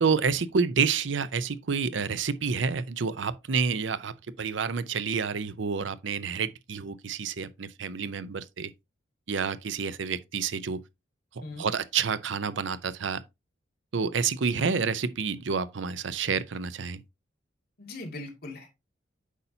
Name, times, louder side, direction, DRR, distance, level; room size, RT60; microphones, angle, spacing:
voice 1, 0.0-8.7 9.3-10.8 11.6-13.2 13.9-17.0, right 5 dB, 75° right, 0.6 m, -29 dB
voice 2, 17.8-18.7, left 2 dB, 55° left, 2.1 m, -40 dB
8.2 x 5.6 x 2.7 m
head